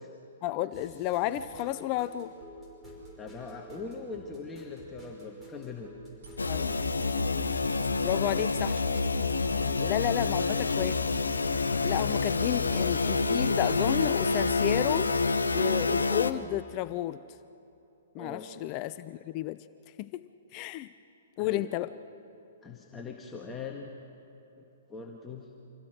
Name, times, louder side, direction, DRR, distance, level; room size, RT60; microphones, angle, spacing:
voice 1, 0.4-2.3 6.5-6.7 8.0-8.9 9.9-11.0 11.8-15.1 15.5-17.2 18.1-19.6 20.0-20.2 20.5-20.9 21.4-21.9, left 15 dB, 35° left, 14 dB, 0.5 m, -32 dB
sound 1, 0.7-6.9, right 1 dB, 10° right, 5.6 m, -49 dB
voice 2, 3.2-5.9 9.5-9.9 18.2-18.5 21.4-21.7 22.6-23.9 24.6-25.5, left 4 dB, 15° left, 0 dB, 1.7 m, -42 dB
sound 2, 6.1-7.6 7.9-13.4 13.6-15.1, right 4 dB, 60° right, 4.0 m, -45 dB
sound 3, 6.4-16.3, left 4 dB, 85° left, 0.9 m, -27 dB
26.5 x 16.5 x 6.6 m, 2.7 s
figure-of-eight pair, 120°, 0 cm